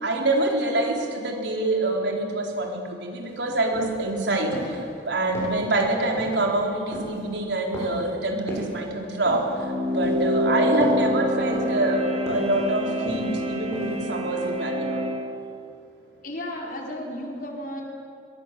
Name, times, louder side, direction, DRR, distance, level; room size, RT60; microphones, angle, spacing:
voice 1, 0.0-1.0 1.2-4.5 5.1-9.4 10.0-15.0, right 2 dB, 70° right, 1 dB, 4.3 m, -25 dB
sound 1, 3.2-3.3 3.7-4.1 4.5-4.8 5.3-5.7 6.2-6.5 6.9-7.2 7.7-8.1 8.5-8.8 9.3-9.6 10.0-10.4 10.8-11.1 11.5-11.9 12.3-12.6 13.1-13.4 13.7-14.1 14.4-14.5, equal, 15° left, 7.9 m, -35 dB
sound 2, 9.5-15.2, equal, 35° right, 3.1 m, -26 dB
voice 2, 16.2-17.8, left 1 dB, 50° left, 0 dB, 4.6 m, -33 dB
26.0 x 23.5 x 7.7 m, 2.5 s
head